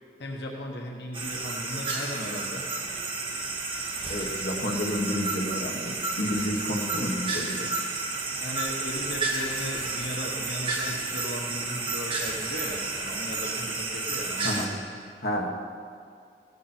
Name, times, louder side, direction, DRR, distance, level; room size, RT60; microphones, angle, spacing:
voice 1, 0.2-2.6 8.4-14.5, left 1 dB, 80° left, 0 dB, 1.3 m, -36 dB
sound 1, 1.1-14.7, right 3 dB, 30° right, 1.6 m, -31 dB
voice 2, 4.1-7.7 14.4-14.7 15.2-15.5, left 1 dB, 60° left, 1 dB, 1.5 m, -30 dB
16.5 x 13.5 x 4.5 m, 2.3 s
head